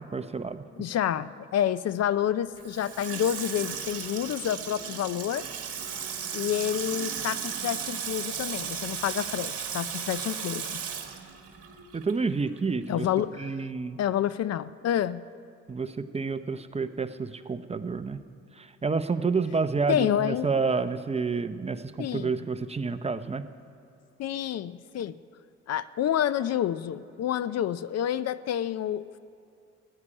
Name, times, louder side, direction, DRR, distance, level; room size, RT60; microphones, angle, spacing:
voice 1, 0.1-0.6 11.9-13.1 13.4-14.0 15.7-18.2 18.5-23.4, right 4 dB, 20° right, 11 dB, 0.6 m, -29 dB
voice 2, 0.8-5.5 6.3-10.8 12.9-13.5 14.0-15.2 19.9-20.5 22.0-22.3 24.2-25.1 25.7-29.0, left 10 dB, 60° left, 16 dB, 0.5 m, -28 dB
Water tap faucet / Sink (filling or washing), 2.6-12.3 12.6-12.7, right 7 dB, 50° right, 1.8 m, -35 dB
14.0 x 9.9 x 9.8 m, 2.4 s
cardioid pair, 90°, 30 cm